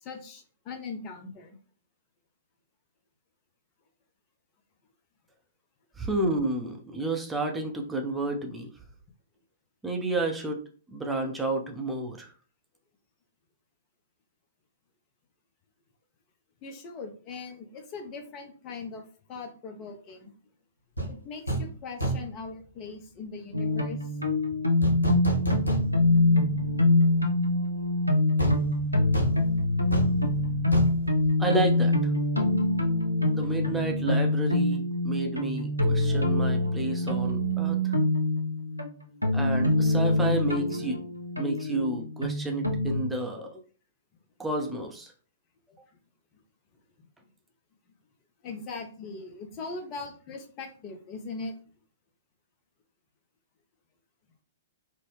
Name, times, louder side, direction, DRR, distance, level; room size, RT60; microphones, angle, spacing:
voice 1, 0.0-1.6 16.6-19.0 19.3-20.3 21.1-24.6 47.0-47.1 48.4-51.5, left 4 dB, 30° left, 6 dB, 0.7 m, -40 dB
voice 2, 6.0-8.7 9.8-10.6 10.9-12.3 31.4-32.1 33.3-38.0 39.3-41.0 41.4-43.6 44.4-45.1, right 2 dB, 5° right, 1 dB, 0.6 m, -30 dB
sound 1, 21.0-21.1 21.5-21.7 22.0-22.4 24.8-26.2 26.6-26.7 28.4-32.0 32.3-32.5, right 2 dB, 85° left, 1.0 m, -30 dB
sound 2, 23.5-43.0, left 2 dB, 90° right, 0.6 m, -25 dB
3.7 x 2.1 x 3.3 m, 0.40 s
figure-of-eight pair, 110°, 0 cm